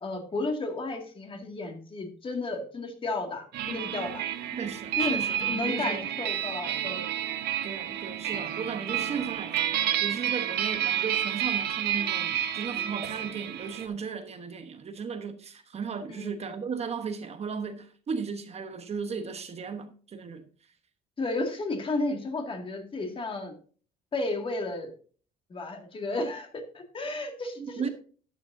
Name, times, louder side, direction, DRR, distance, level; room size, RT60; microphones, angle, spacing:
voice 1, 0.0-4.3 5.0-7.0 16.2-16.3 21.2-23.5 24.1-24.9 25.5-27.9, left 2 dB, 30° left, 2.1 m, -33 dB
sound 1, 3.5-13.9, right 10 dB, 75° right, 1.2 m, -30 dB
voice 2, 4.5-6.0 7.6-9.6 10.0-20.4 27.6-27.9, right 6 dB, 40° right, 1.1 m, -36 dB
12.5 x 8.7 x 2.7 m
cardioid pair, 110°, 17 cm